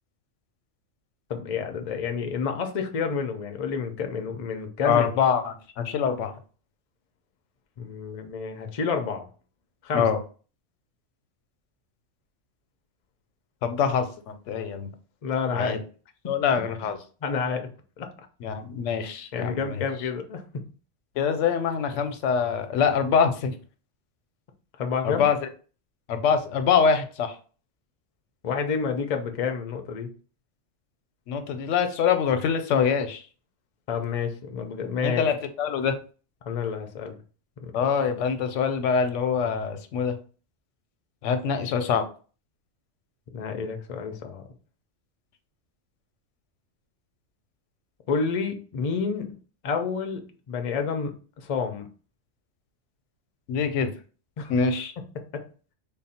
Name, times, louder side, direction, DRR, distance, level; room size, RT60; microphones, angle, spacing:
voice 1, 1.3-5.1 7.8-9.3 9.8-10.1 15.2-15.8 17.2-17.7 18.0-18.1 19.3-20.4 24.8-25.2 28.4-30.1 33.9-35.2 36.5-37.2 37.6-37.7 43.3-44.4 48.1-49.3 49.6-51.9 54.4-54.5, left 5 dB, 50° left, 5 dB, 0.4 m, -29 dB
voice 2, 4.8-6.3 9.9-10.2 13.6-14.9 15.5-15.8 16.3-17.0 18.4-19.8 21.2-23.6 25.0-25.4 26.1-27.4 31.3-33.2 35.0-36.0 37.7-40.2 41.2-42.0 53.5-53.9 54.5-54.9, left 6 dB, 90° left, 8 dB, 0.9 m, -24 dB
3.8 x 2.1 x 4.2 m, 0.38 s
omnidirectional pair, 1.2 m